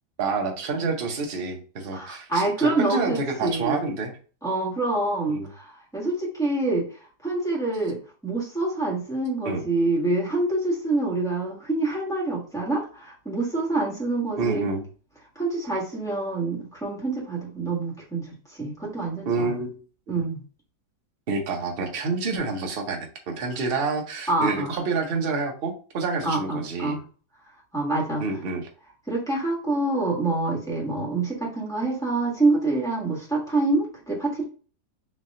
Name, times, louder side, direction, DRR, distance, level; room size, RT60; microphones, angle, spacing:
voice 1, 0.2-4.1 5.3-5.5 9.4-9.6 14.4-14.8 19.3-19.7 20.1-20.2 21.3-27.0 28.2-28.7, right 4 dB, 45° right, 3 dB, 0.8 m, -28 dB
voice 2, 1.9-3.8 4.4-6.9 7.2-14.6 15.3-18.3 18.6-19.5 20.1-20.4 24.3-24.8 26.2-27.0 27.7-28.2 29.1-34.4, right 2 dB, ahead, -4 dB, 1.3 m, -26 dB
4.2 x 2.8 x 3.6 m, 0.39 s
omnidirectional pair, 1.8 m